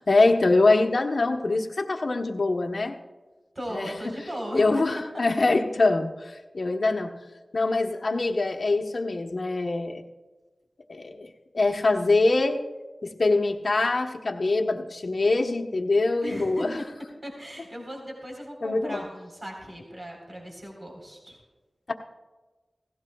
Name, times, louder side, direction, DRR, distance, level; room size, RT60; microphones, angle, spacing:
voice 1, 0.1-2.9 3.7-4.1 4.5-7.1 7.5-10.0 10.9-11.3 11.5-12.6 13.0-16.7 18.6-19.0, left 3 dB, 65° left, 4 dB, 1.1 m, -24 dB
voice 2, 3.5-4.6 16.2-16.6 17.2-21.4, equal, 35° right, 0 dB, 3.9 m, -37 dB
18.0 x 16.0 x 2.3 m, 1.2 s
wide cardioid pair, 50°, 0 cm